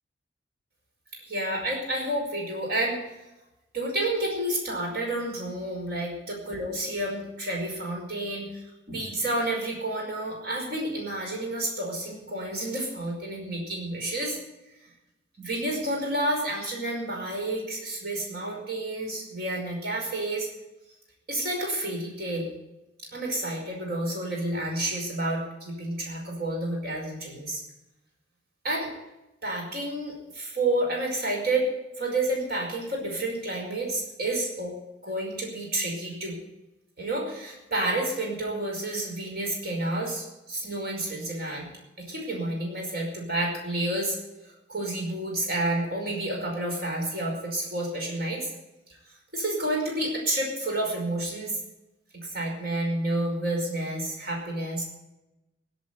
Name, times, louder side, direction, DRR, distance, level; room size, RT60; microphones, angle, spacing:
voice 1, 1.3-3.0 3.7-14.4 15.4-20.5 21.3-22.5 23.1-27.6 28.6-28.9 29.4-31.7 32.0-34.7 35.0-36.4 37.0-41.7 42.0-44.2 44.4-48.5 49.3-51.6 52.1-54.8, right 1 dB, 55° right, 0 dB, 5.3 m, -30 dB
17.0 x 8.2 x 8.2 m, 0.95 s
head